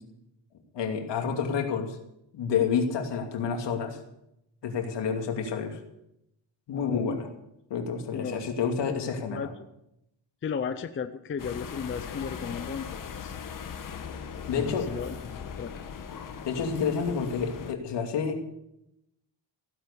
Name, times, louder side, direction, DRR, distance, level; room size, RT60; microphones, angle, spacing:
voice 1, 0.7-2.0 2.3-4.0 4.6-5.8 6.7-7.3 7.7-9.5 14.5-14.9 16.4-18.4, left 6 dB, 65° left, 4 dB, 2.6 m, -29 dB
voice 2, 6.7-7.2 8.1-8.7 8.9-9.5 10.4-13.3 14.5-15.7, left 6 dB, 25° left, 9 dB, 0.6 m, -35 dB
sound 1, 11.4-17.7, left 7 dB, 45° left, 1.4 m, -39 dB
15.5 x 10.5 x 7.0 m, 0.83 s
cardioid pair, 165°, 46 cm